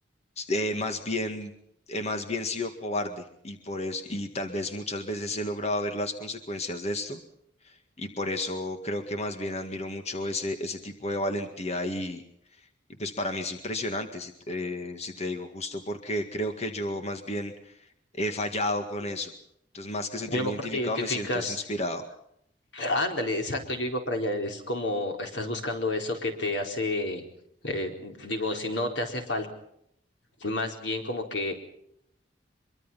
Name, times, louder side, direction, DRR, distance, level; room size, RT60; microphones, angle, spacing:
voice 1, 0.4-1.5 1.9-7.2 7.6-12.2 13.0-17.8 18.1-19.3 19.7-22.0, left 1 dB, 40° left, 7 dB, 1.9 m, -32 dB
voice 2, 20.3-21.6 22.7-27.2 27.6-29.5 30.4-31.5, left 1 dB, 85° left, 4 dB, 4.4 m, -30 dB
25.0 x 23.5 x 5.7 m, 0.75 s
head